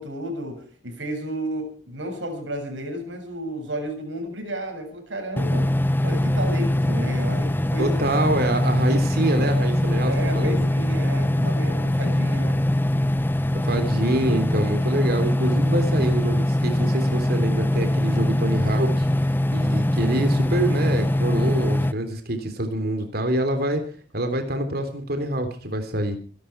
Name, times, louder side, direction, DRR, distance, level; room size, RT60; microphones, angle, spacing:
voice 1, 0.0-5.8 6.0-8.2 10.1-12.6, right 1 dB, 90° right, 5 dB, 7.0 m, -32 dB
sound 1, 5.4-21.9, left 1 dB, 10° left, 0.9 m, -22 dB
voice 2, 7.8-10.7 13.5-19.1 19.5-23.8 24.1-26.2, right 1 dB, 60° right, 7 dB, 3.4 m, -26 dB
24.5 x 12.5 x 4.6 m, 0.40 s
head